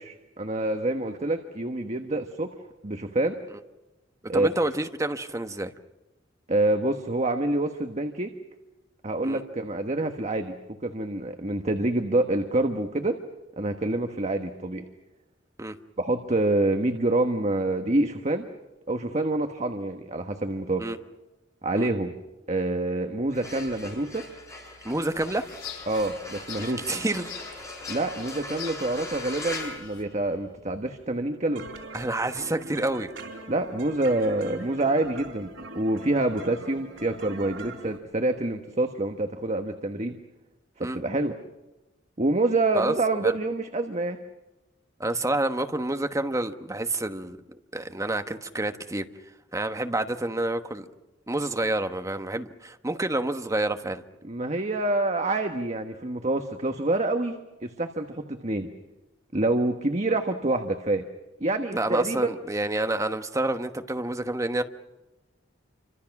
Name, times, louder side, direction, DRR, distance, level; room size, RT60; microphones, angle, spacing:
voice 1, 0.0-2.5 2.8-3.4 4.3-4.5 6.5-8.3 9.0-10.5 10.8-13.1 13.6-14.9 16.0-18.4 18.9-20.9 21.6-22.1 22.5-24.2 25.9-26.8 27.9-31.7 33.5-40.1 40.8-41.4 42.2-44.2 54.2-57.3 57.6-58.7 59.3-61.0 61.4-62.3, right 2 dB, 35° right, 6 dB, 1.4 m, -27 dB
voice 2, 4.3-5.7 9.2-9.4 15.6-15.8 20.8-21.0 21.7-21.9 24.8-25.5 26.6-27.3 31.9-33.1 40.8-41.0 42.7-42.9 43.2-43.3 45.0-47.4 47.7-49.1 49.5-50.9 51.3-54.0 61.7-64.6, right 2 dB, 15° right, 7 dB, 1.2 m, -28 dB
sound 1, 23.2-30.6, left 2 dB, 15° left, 7.7 m, -40 dB
sound 2, 25.0-30.0, left 9 dB, 85° left, 3.2 m, -44 dB
sound 3, 31.5-38.0, right 2 dB, 90° right, 3.8 m, -42 dB
28.5 x 25.5 x 6.0 m, 1.0 s
head